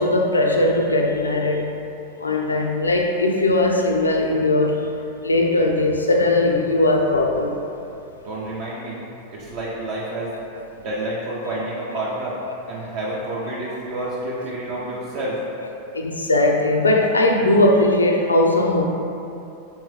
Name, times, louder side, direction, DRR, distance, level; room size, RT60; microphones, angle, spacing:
voice 1, 0.0-1.7 2.2-4.8 5.2-7.6 15.9-18.8, left 2 dB, 80° left, 2 dB, 0.4 m, -19 dB
voice 2, 8.2-9.0 9.3-10.3 10.8-12.4 12.7-15.5, right 1 dB, 45° right, -5 dB, 0.5 m, -29 dB
3.6 x 3.2 x 3.1 m, 2.7 s
figure-of-eight pair, 90°, 0 cm